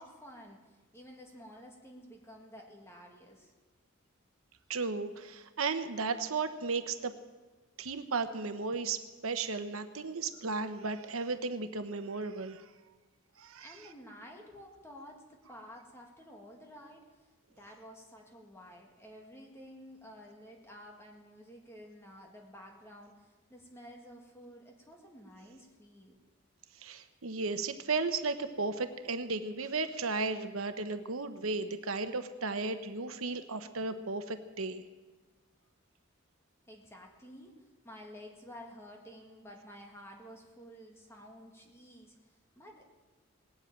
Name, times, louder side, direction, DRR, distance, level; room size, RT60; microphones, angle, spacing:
voice 1, 0.0-3.5 13.6-17.3 17.6-26.2 36.7-42.8, equal, 10° left, 0 dB, 2.0 m, -52 dB
voice 2, 4.7-7.1 7.8-12.6 13.4-13.7 26.8-34.8, right 4 dB, 85° right, 9 dB, 1.0 m, -35 dB
19.5 x 8.1 x 8.9 m, 1.2 s
head